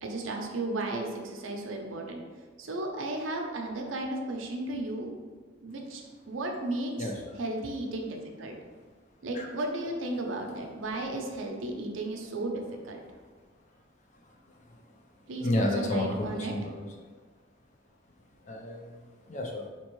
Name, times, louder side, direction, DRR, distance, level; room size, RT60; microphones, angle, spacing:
voice 1, 0.0-2.2 2.6-5.1 5.6-7.1 7.4-8.5 9.2-13.0 15.3-16.5, right 2 dB, 80° right, 2 dB, 0.6 m, -34 dB
voice 2, 15.4-16.9 18.4-19.7, left 1 dB, 40° left, 1 dB, 0.5 m, -31 dB
4.3 x 2.9 x 3.0 m, 1.5 s
head